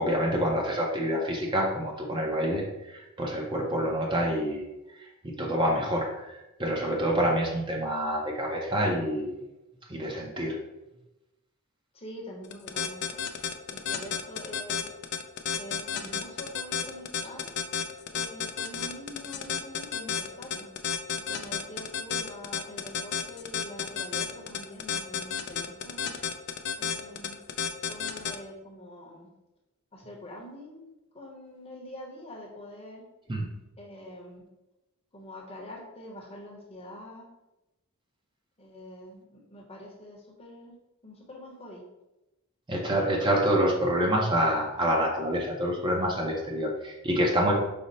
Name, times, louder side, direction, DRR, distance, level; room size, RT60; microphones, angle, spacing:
voice 1, 0.0-4.6 5.0-9.4 9.9-10.6 33.3-33.5 42.7-47.5, equal, 20° right, -1 dB, 0.5 m, -27 dB
voice 2, 11.9-13.2 13.7-14.8 15.6-17.5 18.1-20.7 21.3-26.1 26.8-27.4 27.9-29.3 29.9-30.8 31.1-33.0 33.8-34.4 35.1-37.3 38.6-40.8 41.0-41.8, equal, 25° left, -1 dB, 0.8 m, -45 dB
sound 1, 12.4-28.4, left 7 dB, 50° left, 0.3 m, -31 dB
5.1 x 2.0 x 4.0 m, 0.98 s
head